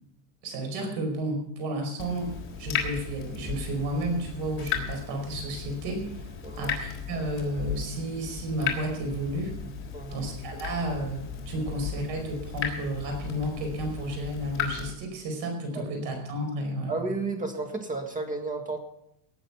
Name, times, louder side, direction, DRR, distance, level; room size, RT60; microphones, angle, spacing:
voice 1, 0.4-6.3 6.6-9.5 10.1-16.9, right 1 dB, 50° right, 4 dB, 5.1 m, -32 dB
Water tap faucet / Drip, 2.0-14.9, left 7 dB, 25° left, 3.7 m, -36 dB
voice 2, 16.9-18.8, right 3 dB, 15° right, 6 dB, 1.8 m, -32 dB
18.5 x 8.9 x 5.9 m, 0.80 s
supercardioid pair, 140°, 50 cm